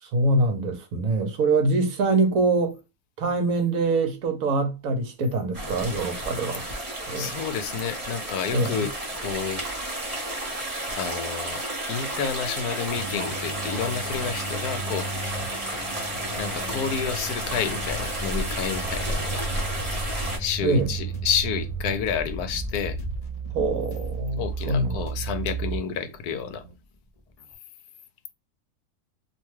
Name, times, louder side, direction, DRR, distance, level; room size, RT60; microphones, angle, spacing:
voice 1, 0.0-2.8 3.2-6.7 7.1-7.3 8.5-8.8 20.6-20.9 23.5-24.4 24.7-25.1, right 3 dB, 70° right, 1.1 m, -24 dB
sound 1, 5.5-20.4, right 1 dB, 25° right, 0.9 m, -32 dB
voice 2, 7.2-9.7 10.9-15.1 16.3-19.5 20.4-23.0 24.4-26.6, left 7 dB, 75° left, 1.0 m, -30 dB
sound 2, 12.9-26.7, right 3 dB, 50° right, 0.4 m, -35 dB
sound 3, 18.4-27.5, equal, 35° left, 0.6 m, -42 dB
2.7 x 2.2 x 3.0 m
omnidirectional pair, 1.6 m